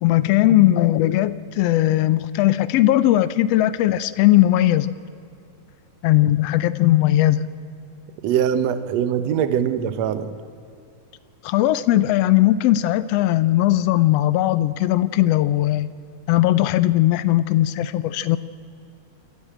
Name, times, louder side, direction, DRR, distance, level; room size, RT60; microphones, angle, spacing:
voice 1, 0.0-5.0 6.0-7.5 11.4-15.9 16.3-18.4, left 14 dB, 85° left, 15 dB, 1.4 m, -18 dB
voice 2, 8.2-10.3, right 9 dB, 65° right, 12 dB, 2.0 m, -22 dB
28.0 x 13.0 x 8.9 m, 2.6 s
omnidirectional pair, 3.6 m